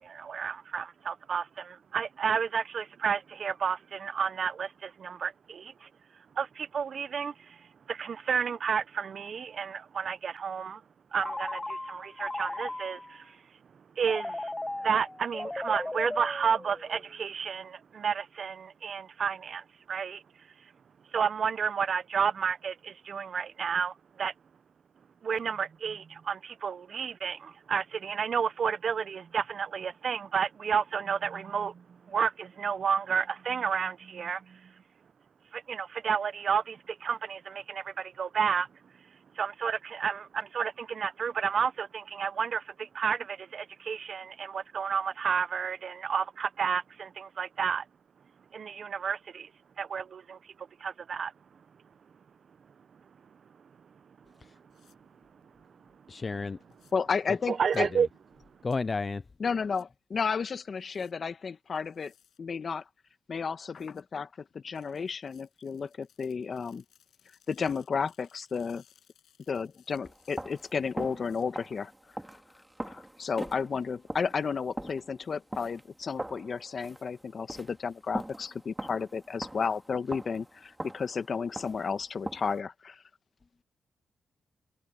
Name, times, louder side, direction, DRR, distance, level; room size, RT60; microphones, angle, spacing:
voice 1, 0.0-5.9 6.4-10.8 11.1-13.4 14.0-14.5 14.8-20.2 21.1-24.3 25.2-34.7 35.5-38.7 39.4-47.8 48.5-49.5 49.8-50.4 50.8-51.3 57.5-58.1, right 6 dB, 65° right, 0.8 m, -31 dB
Telephone, 11.2-13.2 14.0-17.1, left 2 dB, 15° left, 1.1 m, -37 dB
sound 1, 54.7-55.0 56.7-56.9 57.7-57.8 58.7-58.8 59.7-59.8 60.8-61.1 61.8-62.4 63.7-64.0 64.7-71.4, left 10 dB, 85° left, 7.6 m, -65 dB
voice 2, 56.1-56.6 57.3-57.4 57.7-58.0 58.6-59.2, left 4 dB, 40° left, 0.4 m, -32 dB
voice 3, 56.9-57.9 59.4-62.1 62.4-62.8 63.3-64.3 64.5-66.8 67.5-68.8 69.5-71.9 72.8-83.0, left 5 dB, 55° left, 1.6 m, -32 dB
sound 2, 70.0-82.6, right 1 dB, 10° right, 2.3 m, -42 dB
cardioid pair, 65°, 0 cm